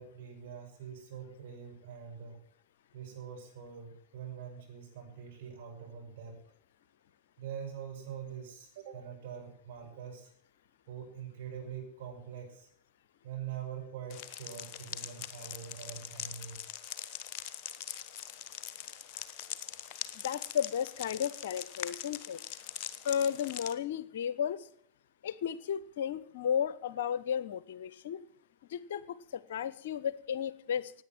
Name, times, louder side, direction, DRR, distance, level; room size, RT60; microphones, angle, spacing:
voice 1, 0.0-2.4 2.9-6.4 7.4-10.3 10.9-12.7 13.2-16.6, right 8 dB, 55° right, 1 dB, 6.1 m, -44 dB
sound 1, 14.1-23.7, left 9 dB, 40° left, 1.1 m, -42 dB
voice 2, 20.2-22.4 23.0-24.6 25.2-28.2 28.7-29.0 29.3-30.9, left 8 dB, 60° left, 18 dB, 0.7 m, -33 dB
17.0 x 9.4 x 7.5 m, 0.64 s
figure-of-eight pair, 90°, 0 cm